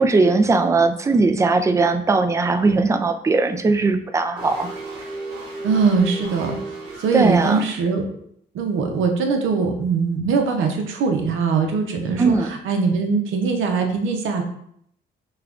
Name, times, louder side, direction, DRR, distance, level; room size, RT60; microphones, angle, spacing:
voice 1, 0.0-4.7 7.1-7.7 12.2-12.5, right 3 dB, 15° right, 8 dB, 0.3 m, -19 dB
sound 1, 4.4-7.6, right 2 dB, 55° right, 1.3 m, -34 dB
voice 2, 5.6-6.7 7.0-8.0 8.5-14.4, right 5 dB, 80° right, 4 dB, 0.7 m, -21 dB
5.5 x 2.3 x 2.4 m, 0.69 s
cardioid pair, 90°, 20 cm